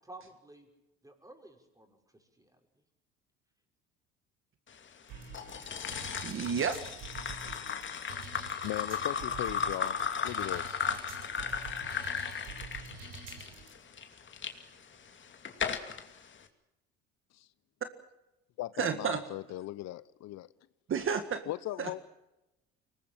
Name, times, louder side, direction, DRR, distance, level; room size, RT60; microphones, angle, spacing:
voice 1, 0.0-0.7 1.0-2.6, right 2 dB, 10° right, 6.2 m, -53 dB
sound 1, 5.1-13.7, right 5 dB, 75° right, 7.5 m, -47 dB
sound 2, 5.3-14.5 15.1-16.0, left 7 dB, 40° left, 2.6 m, -35 dB
voice 2, 6.2-6.8 10.9-11.0 18.8-19.2 20.9-21.4 21.8-22.0, right 7 dB, 45° right, 1.8 m, -31 dB
voice 3, 8.6-10.8 17.3-17.5 18.6-20.5 21.5-22.0, left 15 dB, 60° left, 0.8 m, -38 dB
23.5 x 20.0 x 7.6 m
supercardioid pair, 75°, 30 cm